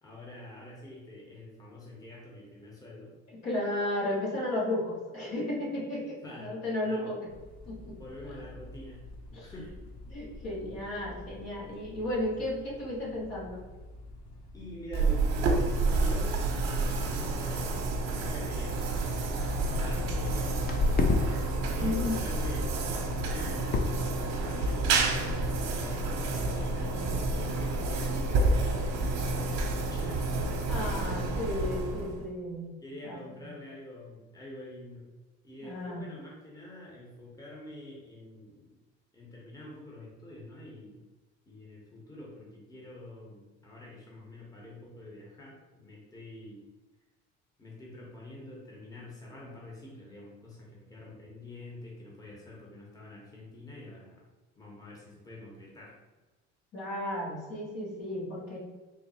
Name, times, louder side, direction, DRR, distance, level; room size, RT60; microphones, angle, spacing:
voice 1, 0.0-3.1 6.2-7.2 8.0-9.1 9.4-9.7 14.5-30.2 31.0-31.2 32.8-35.1 35.4-38.7 39.1-41.0 41.5-46.7 47.6-54.2 54.6-55.9, left 1 dB, 10° left, -3 dB, 0.9 m, -46 dB
voice 2, 3.3-7.3 7.7-8.0 9.3-9.5 10.1-13.6 21.8-22.2 26.8-27.4 30.7-32.7 33.1-33.2 35.6-36.1 56.7-58.6, left 1 dB, 60° left, -4 dB, 1.4 m, -34 dB
sound 1, 7.3-14.9, left 1 dB, 80° left, 0.8 m, -48 dB
sound 2, 14.9-32.3, right 3 dB, 60° right, 0.8 m, -29 dB
sound 3, 16.4-16.6 16.9-17.2 17.8-17.9 18.5-18.6 18.9-21.2 21.6-22.1 22.4-22.7 23.1-23.4 23.7-24.1 24.5-24.8 25.3-25.4 25.7-25.8 26.0-26.4 26.8-27.0 27.3-27.4 27.6-28.0 28.5-28.6, left 3 dB, 30° left, 0.5 m, -32 dB
3.5 x 2.1 x 4.2 m, 1.2 s
supercardioid pair, 95°, 29 cm